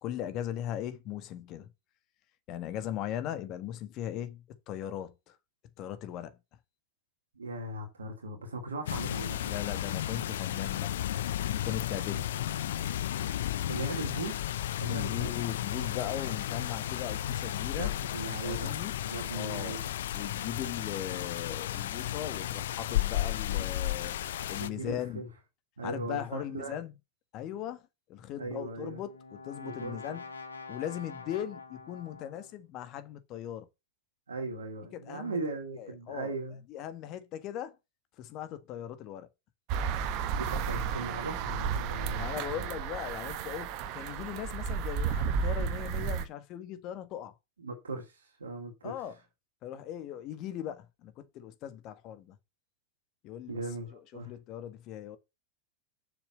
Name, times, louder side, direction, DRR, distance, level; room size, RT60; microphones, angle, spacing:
voice 1, 0.0-1.7 2.5-5.4 5.8-6.4 9.4-11.0 11.5-12.3 14.9-17.9 18.4-18.9 19.3-19.8 20.1-24.2 24.5-25.2 25.8-26.9 27.3-30.3 30.7-33.7 34.9-35.4 35.7-36.4 36.7-37.8 38.2-39.3 42.1-47.3 48.8-49.2 49.6-52.3 53.2-53.6 53.9-55.2, left 11 dB, 40° left, 1.7 m, -39 dB
voice 2, 7.3-9.5 12.6-12.7 13.7-14.5 14.8-15.3 17.8-19.8 24.5-25.3 25.8-26.8 28.4-29.0 29.6-30.2 34.3-36.6 40.3-42.7 47.6-49.0 53.5-54.3, right 2 dB, 70° right, 2.5 m, -38 dB
sound 1, 8.9-24.7, left 12 dB, 60° left, 0.6 m, -33 dB
Brass instrument, 28.6-32.7, left 4 dB, 75° left, 1.7 m, -46 dB
sound 2, 39.7-46.3, right 7 dB, 45° right, 1.3 m, -33 dB
6.9 x 6.4 x 6.9 m
figure-of-eight pair, 90°, 0 cm